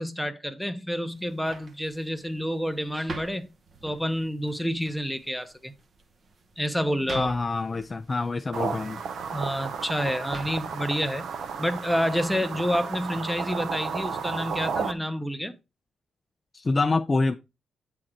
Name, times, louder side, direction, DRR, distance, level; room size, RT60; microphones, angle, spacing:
voice 1, 0.0-3.5 3.8-5.7 6.6-7.3 9.3-11.3 11.6-15.5, equal, ahead, 0.8 m, -28 dB
sound 1, 1.1-12.3, right 3 dB, 45° right, 1.0 m, -47 dB
voice 2, 7.1-9.0 16.5-17.3, left 3 dB, 30° left, 0.4 m, -26 dB
sound 2, 8.5-14.9, right 6 dB, 70° right, 0.7 m, -33 dB
7.7 x 3.7 x 4.4 m
cardioid pair, 90°, 0 cm